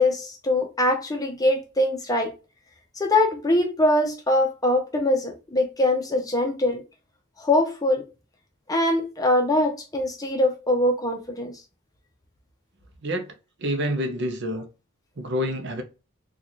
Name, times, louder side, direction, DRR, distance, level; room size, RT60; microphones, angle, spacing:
voice 1, 0.0-2.3 3.0-6.8 7.4-8.0 8.7-11.5, left 1 dB, 15° left, 0.7 m, -22 dB
voice 2, 13.0-13.3 13.6-14.7 15.2-15.8, equal, 55° right, 0.7 m, -27 dB
4.0 x 2.4 x 3.0 m
head